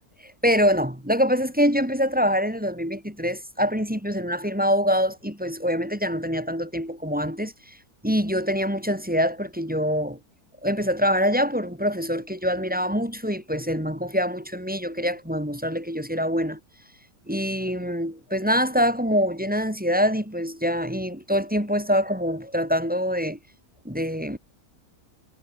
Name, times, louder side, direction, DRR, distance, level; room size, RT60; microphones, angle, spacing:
voice 1, 0.4-7.5 8.0-10.2 10.6-16.6 17.3-23.4 23.8-24.4, equal, 5° right, 3.0 m, -24 dB
omnidirectional pair, 1.6 m